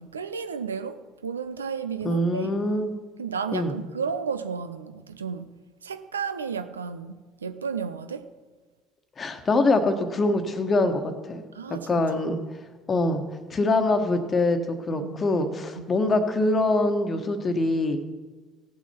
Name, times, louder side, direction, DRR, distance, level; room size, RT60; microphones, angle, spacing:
voice 1, 0.0-2.6 3.2-5.5 5.8-7.2 7.4-8.3 11.5-12.4 14.9-15.2 15.8-15.9, right 6 dB, 80° right, 10 dB, 0.4 m, -33 dB
voice 2, 2.0-2.9 3.5-3.7 9.2-11.0 11.3-11.4 11.9-12.4 12.9-13.2 13.5-18.0, left 2 dB, 30° left, 8 dB, 1.2 m, -24 dB
17.5 x 7.2 x 4.4 m, 1.4 s
figure-of-eight pair, 55°, 0 cm